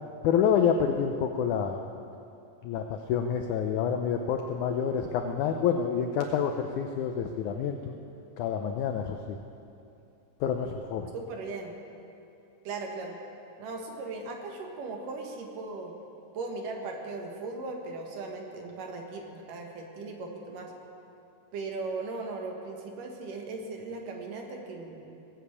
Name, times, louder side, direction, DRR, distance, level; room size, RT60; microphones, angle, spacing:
voice 1, 0.2-1.8 2.6-7.9 8.4-9.4 10.4-11.1, left 7 dB, 80° left, 5 dB, 1.7 m, -28 dB
voice 2, 11.1-11.7 12.6-13.2 13.6-15.9 16.3-20.7 21.5-25.0, right 3 dB, 65° right, 2 dB, 2.8 m, -38 dB
19.0 x 7.9 x 8.5 m, 2.7 s
omnidirectional pair, 4.2 m